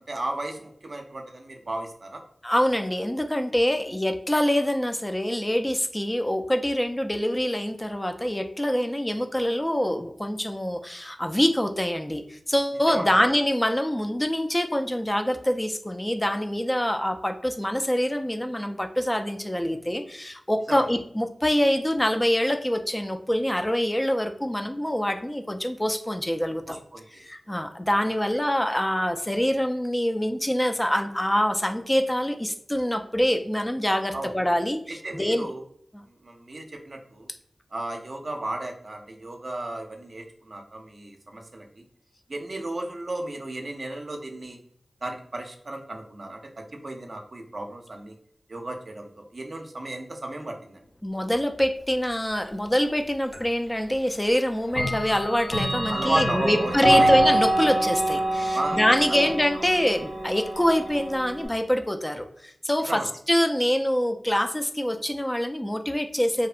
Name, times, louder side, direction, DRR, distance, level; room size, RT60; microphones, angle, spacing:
voice 1, 0.1-2.2 12.9-13.1 20.7-20.9 26.7-27.2 34.1-34.3 34.9-35.6 36.1-37.3 37.7-41.8 42.3-44.6 45.0-48.1 48.5-50.9 55.9-57.1 58.5-58.8 59.1-59.7 62.8-63.1, right 2 dB, 60° right, 3 dB, 0.4 m, -34 dB
voice 2, 2.4-26.8 27.2-35.5 35.9-36.0 51.0-63.0 63.3-66.5, equal, 15° left, 6 dB, 0.3 m, -25 dB
Clock, 53.3-53.4 54.7-61.5, right 1 dB, 50° left, 0.9 m, -25 dB
2.7 x 2.1 x 2.4 m, 0.65 s
cardioid pair, 45°, 0 cm